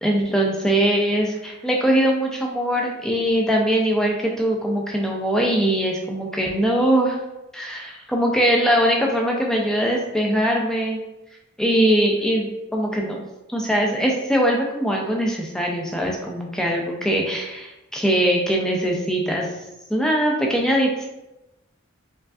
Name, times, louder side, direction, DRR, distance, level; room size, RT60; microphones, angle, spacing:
voice 1, 0.0-7.2 7.5-11.0 11.6-13.2 13.5-19.5 19.9-21.1, right 1 dB, 5° left, -1 dB, 0.4 m, -21 dB
4.5 x 2.5 x 2.4 m, 0.97 s
head